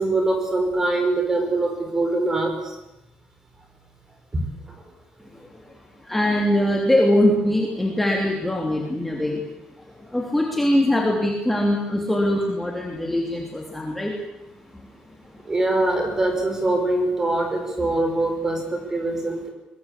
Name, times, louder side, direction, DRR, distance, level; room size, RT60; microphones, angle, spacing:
voice 1, 0.0-2.8 4.3-4.4 15.5-19.5, right 2 dB, 15° right, 5 dB, 5.2 m, -23 dB
voice 2, 6.1-9.4 10.1-14.1, left 1 dB, 5° left, 0 dB, 3.2 m, -22 dB
22.5 x 22.0 x 8.6 m, 0.91 s
cardioid pair, 170°, 3 cm